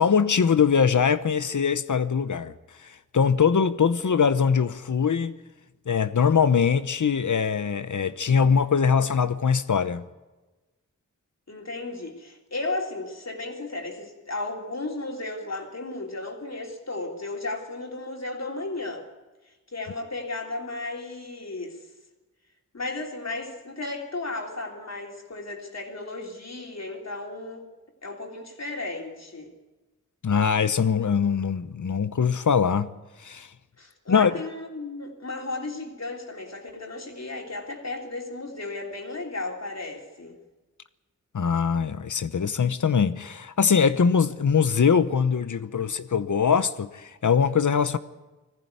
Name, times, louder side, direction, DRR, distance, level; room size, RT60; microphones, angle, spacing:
voice 1, 0.0-2.5 2.8-5.4 5.9-10.1 30.2-32.9 33.2-33.5 34.1-34.3 41.3-48.0, left 6 dB, 75° left, 0.9 m, -22 dB
voice 2, 11.5-19.1 19.4-21.8 22.7-27.7 28.0-29.5 33.8-40.4, left 2 dB, 60° left, 3.3 m, -34 dB
20.5 x 15.0 x 9.5 m
wide cardioid pair, 80°, 31 cm